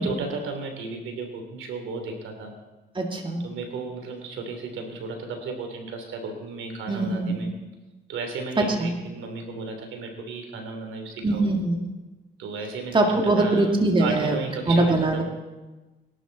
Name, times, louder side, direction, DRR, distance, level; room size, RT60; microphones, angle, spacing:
voice 1, 0.0-2.5 3.4-7.5 8.1-11.4 12.4-13.7 14.0-15.2, right 4 dB, 85° right, 4 dB, 3.1 m, -34 dB
voice 2, 2.9-3.4 6.9-7.4 8.6-8.9 11.2-11.8 12.9-14.4 14.7-15.2, right 2 dB, 25° right, 1 dB, 2.2 m, -22 dB
22.5 x 12.0 x 4.0 m, 1.2 s
cardioid pair, 90°, 20 cm